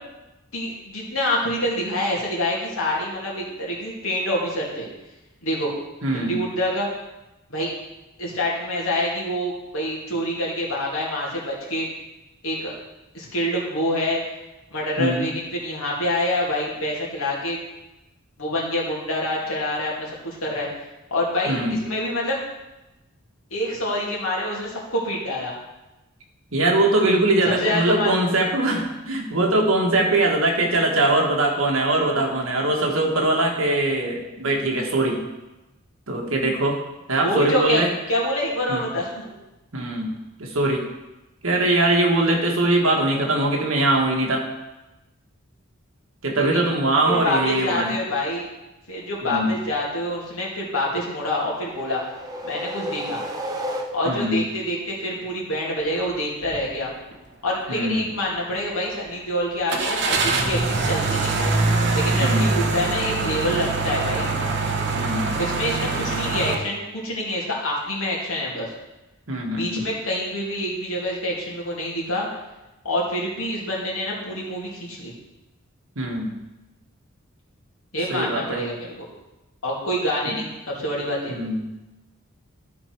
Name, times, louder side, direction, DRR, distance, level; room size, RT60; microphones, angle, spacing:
voice 1, 0.5-4.9 5.4-5.7 6.1-6.9 7.5-7.7 8.2-11.9 12.4-12.7 13.1-14.2 14.7-17.6 18.4-20.7 21.1-22.4 23.5-25.5 27.4-28.2 37.2-37.8 38.1-39.3 46.3-46.6 47.1-48.5 48.9-52.0 52.4-53.2 53.9-56.9 57.4-61.5 61.9-64.3 65.4-68.7 69.5-72.3 72.8-75.1 77.9-79.1 79.6-81.4, left 1 dB, 80° left, -4 dB, 2.5 m, -26 dB
voice 2, 6.0-6.4 15.0-15.3 21.5-21.8 26.5-35.2 36.1-36.8 37.1-37.9 38.7-38.8 39.7-40.1 40.4-40.9 41.4-44.5 46.2-47.9 49.2-49.6 54.0-54.4 57.7-58.0 62.2-62.5 64.9-65.3 69.3-69.9 75.9-76.3 78.1-78.6 80.2-80.4 81.3-81.7, right 2 dB, 70° right, 0 dB, 1.6 m, -22 dB
sound 1, 51.5-54.4, equal, 20° right, 0.8 m, -33 dB
sound 2, 56.4-56.7 57.1-57.2 59.7-66.6, right 3 dB, 55° right, 0.8 m, -23 dB
12.5 x 4.3 x 4.6 m, 1.0 s
head